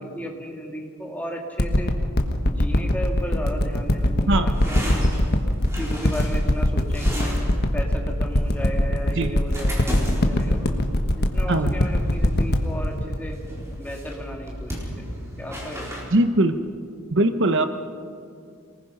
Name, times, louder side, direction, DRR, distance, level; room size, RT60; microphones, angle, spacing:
voice 1, 0.0-1.9 2.5-5.1 5.7-7.3 7.7-10.6 11.2-13.4 13.8-15.1 15.4-16.1, equal, 5° left, 0 dB, 2.5 m, -35 dB
sound 1, 1.6-14.3 14.9-15.0, left 1 dB, 45° left, 1.4 m, -22 dB
sound 2, 3.2-16.0, equal, 10° right, 4.1 m, -35 dB
voice 2, 16.1-16.6 17.1-17.7, right 1 dB, 55° right, 9 dB, 0.9 m, -20 dB
27.0 x 19.5 x 5.5 m, 2.3 s
head